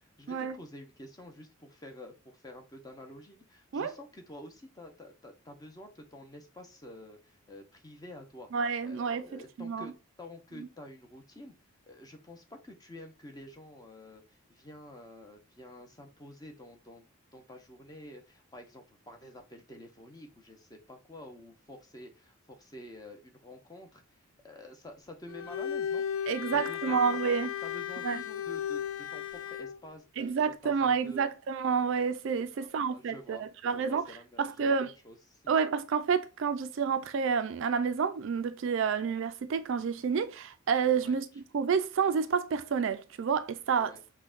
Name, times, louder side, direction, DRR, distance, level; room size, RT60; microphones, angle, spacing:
voice 1, 0.0-8.5 8.8-11.5 11.9-17.0 17.3-24.0 24.4-26.1 26.5-27.3 27.6-31.3 32.5-35.4 41.0-41.2 43.7-44.0, left 1 dB, 15° left, 0.6 m, -49 dB
voice 2, 8.5-9.9 10.6-10.7 26.3-27.5 28.0-28.2 30.2-34.9 35.5-43.9, right 6 dB, 55° right, 0.3 m, -29 dB
Bowed string instrument, 25.3-29.8, left 9 dB, 65° left, 0.3 m, -35 dB
5.6 x 2.2 x 2.4 m
head